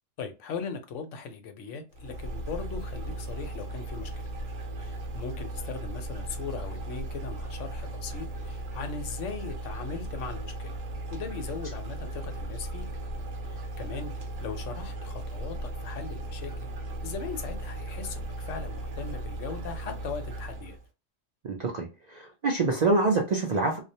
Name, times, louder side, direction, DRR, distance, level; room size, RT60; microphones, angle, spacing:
voice 1, 0.2-4.1 4.8-10.8 11.1-12.8 13.5-14.1 14.4-16.7 17.0-20.8, left 5 dB, 75° left, 0.9 m, -39 dB
sound 1, 1.9-20.8, right 1 dB, 60° right, 0.8 m, -37 dB
voice 2, 21.4-23.8, right 3 dB, 75° right, 0.4 m, -26 dB
2.3 x 2.0 x 2.7 m
omnidirectional pair, 1.3 m